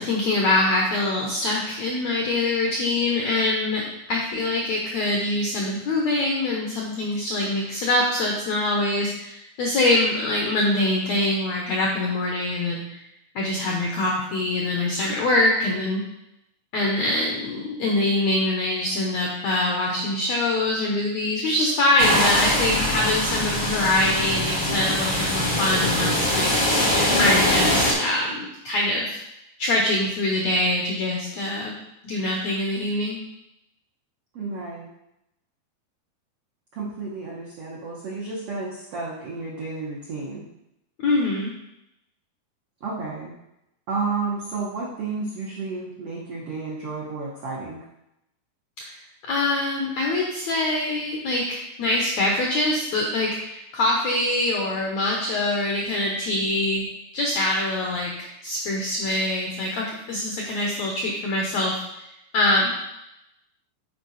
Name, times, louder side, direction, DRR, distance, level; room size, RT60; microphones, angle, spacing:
voice 1, 0.0-13.0 13.3-16.0 16.7-29.2 29.6-31.7 32.0-33.2 41.0-41.5 48.8-48.9 49.3-56.8 57.1-62.0 62.3-62.7, left 2 dB, 80° left, -1 dB, 1.6 m, -24 dB
sound 1, 22.0-27.9, left 1 dB, 45° left, 0.6 m, -22 dB
voice 2, 34.3-34.9 36.7-40.4 42.8-43.3 43.9-47.8, right 4 dB, 80° right, -4 dB, 1.3 m, -31 dB
9.4 x 4.7 x 4.0 m, 0.86 s
omnidirectional pair, 4.3 m